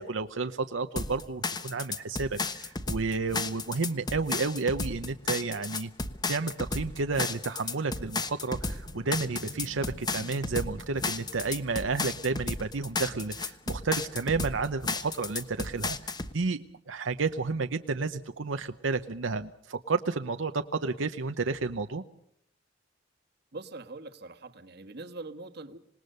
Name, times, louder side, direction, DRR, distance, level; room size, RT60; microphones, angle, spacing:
voice 1, 0.0-5.9 6.3-16.6 16.9-22.0, right 4 dB, 85° right, 8 dB, 0.8 m, -31 dB
sound 1, 1.0-16.3, left 3 dB, 20° left, 1.1 m, -33 dB
Boom, 8.8-11.9, equal, 80° left, 5.9 m, -47 dB
voice 2, 23.5-25.8, right 3 dB, 60° right, 7 dB, 1.4 m, -43 dB
26.5 x 19.5 x 6.7 m, 0.70 s
head